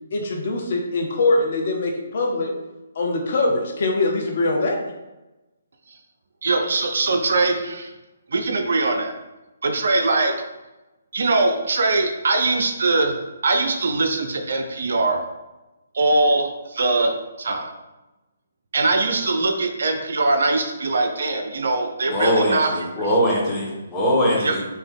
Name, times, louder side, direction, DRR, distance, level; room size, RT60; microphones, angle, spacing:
voice 1, 0.1-2.5 3.0-4.8, left 2 dB, 50° left, 1 dB, 0.7 m, -22 dB
voice 2, 6.4-7.9 8.3-9.1 9.6-10.3 11.1-13.1 13.4-15.2 15.9-17.7 18.7-22.7 24.4-24.7, right 3 dB, 60° right, 5 dB, 0.5 m, -21 dB
voice 3, 22.1-24.7, equal, 15° left, -5 dB, 1.1 m, -21 dB
3.5 x 2.8 x 3.6 m, 1.0 s
figure-of-eight pair, 135°, 0 cm